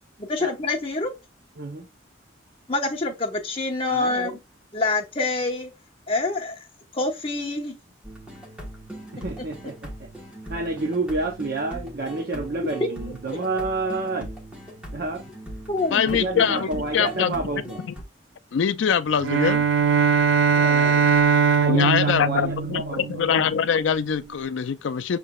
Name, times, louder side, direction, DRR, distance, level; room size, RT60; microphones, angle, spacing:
voice 1, 0.2-1.1 2.7-4.4 4.7-5.7 6.1-6.7 6.9-7.8 9.4-9.5 12.8-12.9 15.7-16.1, left 3 dB, 30° left, 1.0 m, -26 dB
voice 2, 1.6-1.9 3.9-4.4 9.1-10.1 10.5-14.3 14.9-15.2 16.0-17.8 20.6-21.2 21.6-23.1, right 3 dB, 50° right, 0.7 m, -29 dB
sound 1, 8.0-18.0, right 1 dB, 5° right, 1.2 m, -40 dB
voice 3, 15.9-16.7 16.9-17.4 18.5-19.6 21.7-25.2, left 7 dB, 70° left, 0.4 m, -23 dB
Bowed string instrument, 19.2-23.6, right 6 dB, 80° right, 0.4 m, -21 dB
6.4 x 3.2 x 2.3 m
head